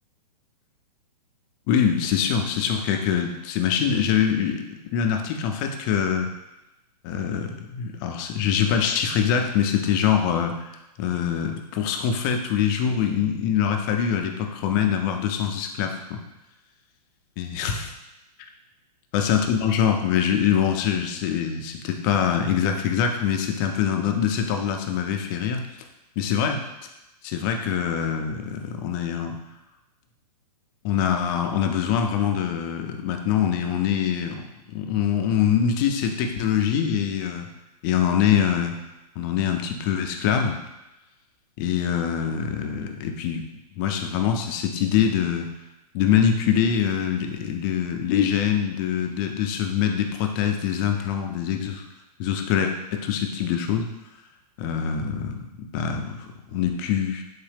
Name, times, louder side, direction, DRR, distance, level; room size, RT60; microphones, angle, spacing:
voice 1, 1.7-6.3 7.0-10.7 11.0-16.2 17.4-17.9 19.1-25.6 26.2-26.6 27.2-29.4 30.8-34.5 34.7-37.5 37.8-38.7 39.2-40.6 41.6-43.5 43.7-45.5 45.9-51.9 52.2-53.9 54.6-57.2, left 8 dB, 30° left, 4 dB, 0.4 m, -24 dB
4.0 x 2.7 x 3.3 m, 0.94 s
hypercardioid pair, 130°, 21 cm